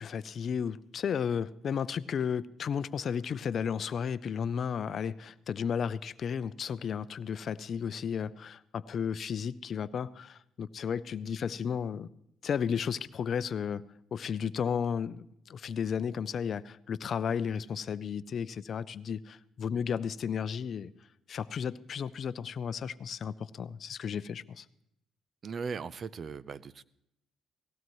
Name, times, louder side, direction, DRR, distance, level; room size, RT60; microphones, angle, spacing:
voice 1, 0.0-12.1 12.4-13.8 14.1-20.9 21.3-24.7, left 7 dB, 50° left, 0.5 m, -33 dB
voice 2, 25.4-26.8, right 5 dB, 45° right, 0.6 m, -38 dB
19.0 x 16.0 x 3.1 m
cardioid pair, 95°, 0 cm